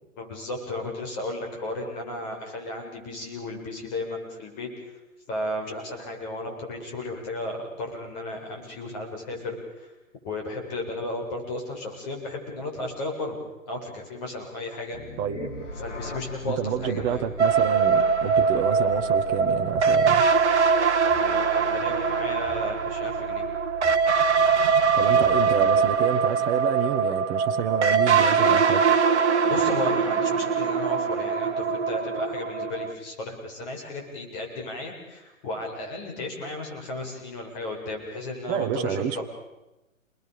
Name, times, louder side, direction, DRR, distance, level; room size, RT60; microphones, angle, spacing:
voice 1, 0.2-5.0 5.3-9.9 10.2-13.4 13.7-15.0 15.8-17.2 21.2-23.5 29.4-39.2, left 1 dB, 30° left, 1 dB, 7.9 m, -34 dB
sound 1, 14.9-26.1, left 1 dB, 65° left, 4.8 m, -40 dB
voice 2, 16.5-20.3 24.9-28.8 38.5-39.2, right 9 dB, 20° right, 9 dB, 1.3 m, -28 dB
sound 2, 17.4-32.9, right 6 dB, 55° right, 1.4 m, -22 dB
29.5 x 20.5 x 7.0 m, 0.99 s
figure-of-eight pair, 130°, 40 cm